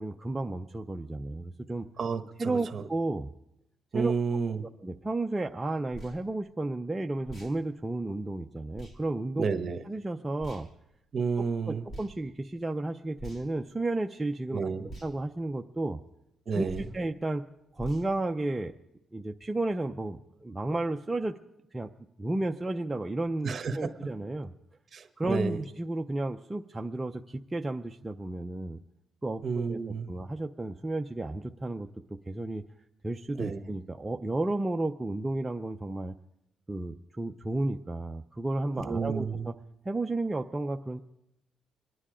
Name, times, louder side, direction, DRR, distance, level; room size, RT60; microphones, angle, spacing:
voice 1, 0.0-1.9 2.4-3.3 3.9-4.1 4.8-9.4 9.9-10.7 11.7-14.7 15.0-16.0 16.5-17.4 17.7-18.7 19.1-21.3 21.7-21.9 22.2-24.5 25.2-28.8 29.2-29.8 30.1-32.6 33.0-36.1 36.7-39.5 39.8-41.0, right 2 dB, 15° right, 3 dB, 0.5 m, -32 dB
voice 2, 2.0-2.8 3.9-4.6 9.4-9.8 11.1-11.9 14.5-14.9 16.5-16.9 23.4-23.9 24.9-25.6 29.4-30.1 33.4-33.6 38.8-39.5, right 5 dB, 40° right, 8 dB, 1.2 m, -31 dB
sound 1, 5.9-6.2 7.2-7.5 8.7-9.0 10.4-10.7 11.9-12.1 13.2-13.6 14.9-15.1 16.7-17.0 17.8-18.1, right 1 dB, 40° left, 3.0 m, -43 dB
26.0 x 9.9 x 5.0 m, 0.84 s
cardioid pair, 120°, 0 cm